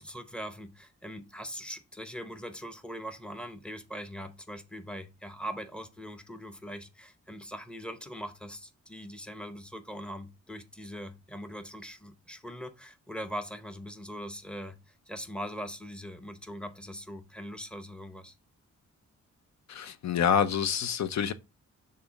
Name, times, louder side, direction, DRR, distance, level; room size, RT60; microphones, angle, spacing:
voice 1, 0.0-18.4, equal, 5° left, 0.7 m, -41 dB
voice 2, 19.7-21.3, left 8 dB, 65° left, 0.7 m, -27 dB
6.7 x 2.7 x 5.1 m
wide cardioid pair, 140°, 29 cm